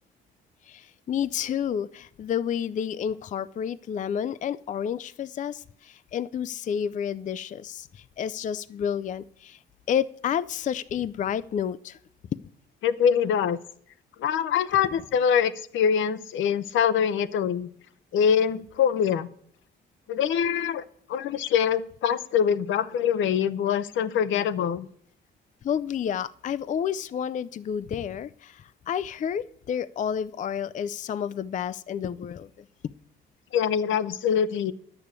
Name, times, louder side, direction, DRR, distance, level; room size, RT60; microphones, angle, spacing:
voice 1, 0.7-9.6 9.9-12.0 25.6-32.5, left 8 dB, 40° left, 15 dB, 0.4 m, -30 dB
voice 2, 12.8-13.6 14.2-17.7 18.1-19.3 20.1-20.8 21.1-24.9 33.5-34.7, left 8 dB, 75° left, 14 dB, 0.7 m, -24 dB
10.0 x 6.8 x 8.2 m, 0.64 s
cardioid pair, 90°, 20 cm